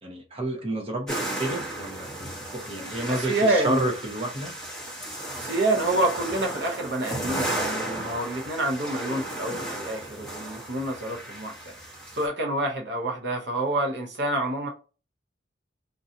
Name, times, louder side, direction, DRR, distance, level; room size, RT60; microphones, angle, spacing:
voice 1, 0.0-2.1 2.5-4.5, right 2 dB, 30° right, 0.9 m, -30 dB
sound 1, 1.1-12.3, right 1 dB, 5° left, 0.9 m, -34 dB
voice 2, 3.1-3.8 5.4-11.5 12.1-14.7, right 1 dB, 60° right, 0.8 m, -27 dB
3.8 x 2.7 x 2.7 m
head